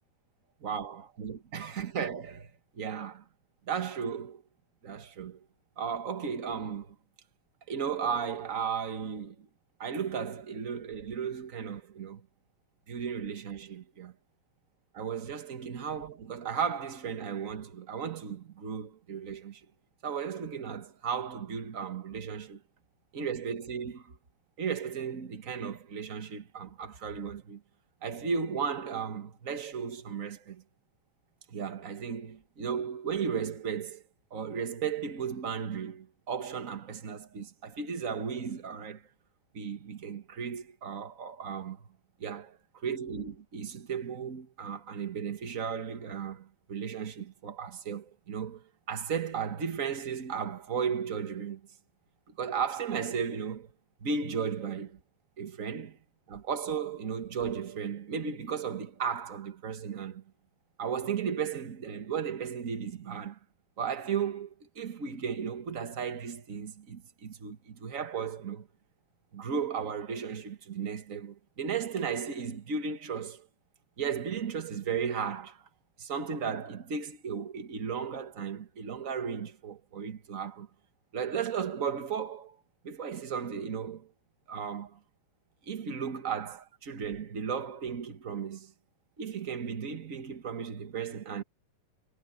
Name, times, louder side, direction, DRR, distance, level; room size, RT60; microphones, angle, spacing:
voice 1, 0.6-2.5 2.8-3.2 3.6-4.4 4.8-5.4 5.8-6.9 7.7-9.5 9.8-12.2 12.9-14.1 14.9-19.6 20.0-22.6 23.1-24.2 24.6-27.6 28.0-30.6 31.5-34.0 34.3-39.0 39.5-41.9 42.2-51.6 52.4-53.7 54.0-55.0 55.4-56.0 56.3-60.2 60.8-63.4 63.8-68.7 69.3-73.5 74.0-75.7 76.0-80.7 81.1-82.6 82.8-84.1 84.5-85.0 85.7-88.7 89.2-91.4, right 6 dB, 50° right, 0.9 m, -35 dB
omnidirectional pair, 3.9 m